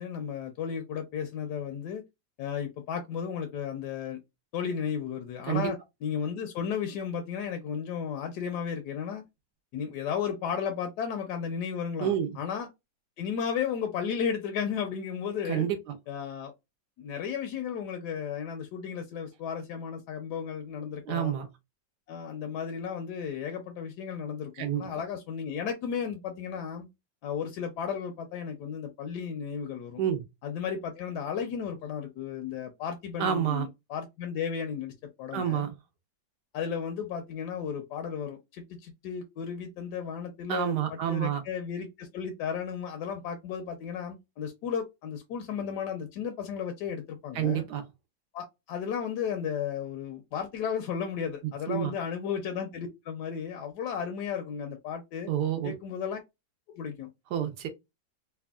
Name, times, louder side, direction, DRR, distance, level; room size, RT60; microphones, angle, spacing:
voice 1, 0.0-2.0 2.4-4.2 4.5-9.2 9.7-12.7 13.2-15.7 16.1-16.5 17.0-21.3 22.1-26.9 27.2-30.0 30.4-34.9 35.2-35.7 36.5-47.6 48.3-55.3 55.6-56.2 56.7-57.1, left 7 dB, 75° left, 1.1 m, -34 dB
voice 2, 12.0-12.4 15.5-16.0 21.1-21.5 24.6-24.9 30.0-30.2 33.2-33.7 35.3-35.7 40.5-41.4 47.3-47.8 51.7-51.9 55.3-55.7 57.3-57.7, right 10 dB, 75° right, 1.2 m, -28 dB
3.4 x 2.2 x 2.2 m
omnidirectional pair, 2.0 m